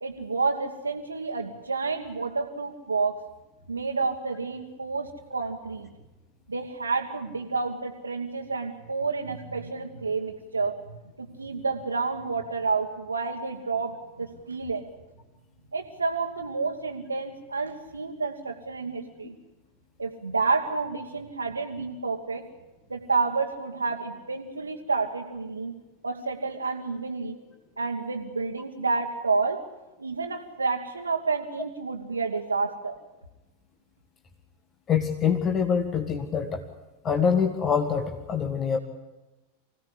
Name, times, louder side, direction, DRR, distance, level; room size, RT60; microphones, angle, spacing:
voice 1, 0.0-3.2 3.7-5.9 6.5-10.8 11.2-14.9 15.7-19.3 20.0-22.5 22.9-25.7 26.0-27.4 27.8-29.6 30.0-33.0, right 4 dB, 80° right, 0 dB, 1.6 m, -29 dB
voice 2, 34.9-36.6 37.0-38.8, left 7 dB, 25° left, 5 dB, 1.8 m, -25 dB
25.0 x 17.0 x 9.9 m, 1.1 s
figure-of-eight pair, 90°, 0 cm